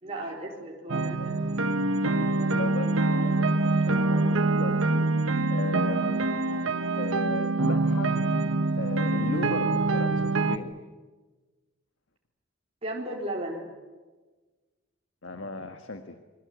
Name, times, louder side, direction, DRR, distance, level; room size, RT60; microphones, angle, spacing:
voice 1, 0.0-1.5 12.8-13.7, right 1 dB, 30° right, -3 dB, 4.1 m, -35 dB
sound 1, 0.9-10.6, right 2 dB, 85° right, 1.3 m, -25 dB
voice 2, 2.5-4.8 5.5-6.2 6.9-8.3 8.8-10.7 15.2-16.2, left 2 dB, 70° left, 7 dB, 1.6 m, -36 dB
28.0 x 23.0 x 8.3 m, 1.3 s
head